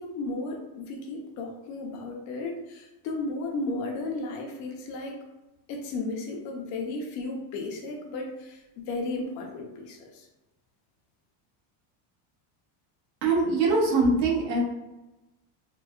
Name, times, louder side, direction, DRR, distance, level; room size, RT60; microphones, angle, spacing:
voice 1, 0.0-5.2 5.7-8.6 8.9-10.3, left 2 dB, 40° left, 1 dB, 0.4 m, -34 dB
voice 2, 13.2-14.6, right 3 dB, 85° right, -4 dB, 1.2 m, -23 dB
3.7 x 2.0 x 2.3 m, 1.0 s
cardioid pair, 160°, 49 cm